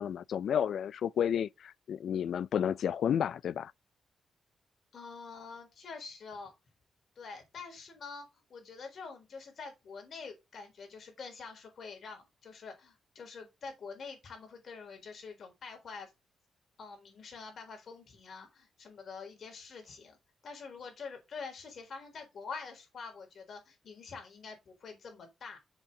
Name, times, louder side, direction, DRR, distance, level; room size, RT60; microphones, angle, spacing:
voice 1, 0.0-3.7, left 9 dB, 75° left, 0.3 m, -31 dB
voice 2, 4.9-6.5 7.2-16.1 16.8-20.2 20.4-25.6, left 4 dB, 60° left, 4.0 m, -46 dB
7.5 x 7.1 x 3.8 m
cardioid pair, 105°, 0 cm